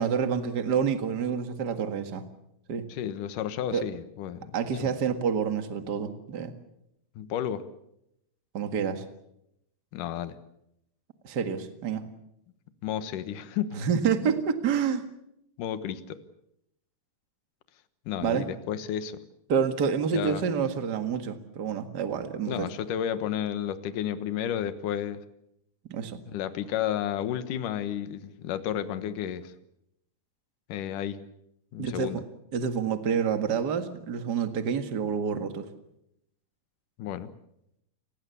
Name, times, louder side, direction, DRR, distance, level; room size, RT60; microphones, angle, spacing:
voice 1, 0.0-2.3 2.7-2.9 3.7-3.8 4.5-6.5 8.5-9.0 11.2-12.0 13.8-15.0 18.2-18.5 19.5-22.7 25.9-26.2 31.8-32.2 32.5-35.6, right 7 dB, 45° right, 8 dB, 1.4 m, -28 dB
voice 2, 2.9-4.5 4.8-5.0 7.2-7.6 9.9-10.4 12.8-13.8 15.6-16.2 18.1-19.2 20.1-20.4 22.5-25.2 26.3-29.5 30.7-31.2 31.7-32.2 37.0-37.3, left 10 dB, 65° left, 11 dB, 2.6 m, -32 dB
29.0 x 20.0 x 7.1 m, 0.80 s
omnidirectional pair, 4.6 m